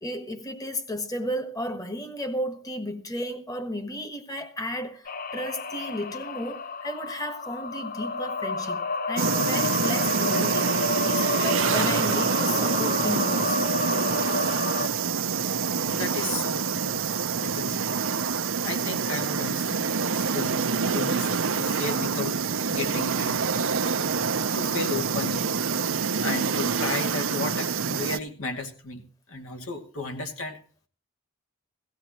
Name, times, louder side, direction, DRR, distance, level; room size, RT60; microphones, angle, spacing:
voice 1, 0.0-10.8 11.0-13.6, equal, 15° left, 1.4 m, -33 dB
sound 1, 5.1-14.9, left 3 dB, 40° left, 0.6 m, -30 dB
sound 2, 9.2-28.2, right 5 dB, 70° right, 0.7 m, -26 dB
voice 2, 15.8-17.8 18.6-23.5 23.8-23.9 24.5-30.6, left 3 dB, 75° left, 2.4 m, -34 dB
17.0 x 15.5 x 3.0 m
head